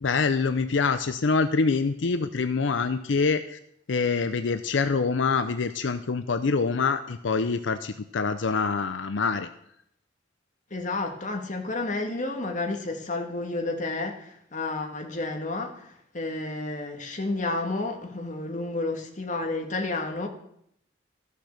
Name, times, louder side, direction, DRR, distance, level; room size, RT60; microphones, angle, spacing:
voice 1, 0.0-3.6 3.9-9.5, left 4 dB, 85° left, 10 dB, 0.6 m, -25 dB
voice 2, 10.7-20.3, left 2 dB, 45° left, 3 dB, 1.7 m, -31 dB
14.0 x 6.5 x 6.5 m, 0.72 s
head